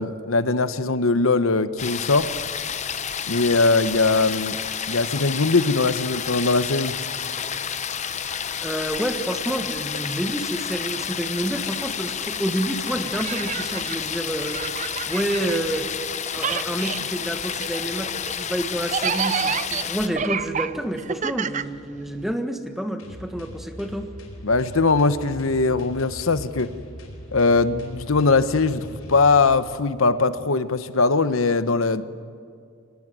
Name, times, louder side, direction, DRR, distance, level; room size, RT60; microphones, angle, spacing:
voice 1, 0.0-2.3 3.3-4.6 4.9-7.0 24.4-26.7 27.3-32.0, left 3 dB, 70° left, 13 dB, 0.9 m, -21 dB
sound 1, 1.8-20.1, left 7 dB, 35° left, 0.8 m, -30 dB
voice 2, 8.6-14.6 15.1-15.9 16.3-24.1, right 1 dB, ahead, 6 dB, 1.4 m, -28 dB
sound 2, 13.0-16.1 16.3-22.3, right 7 dB, 35° right, 0.5 m, -30 dB
sound 3, 23.0-29.6, equal, 85° left, 4.7 m, -40 dB
24.5 x 18.5 x 9.3 m, 2.2 s
head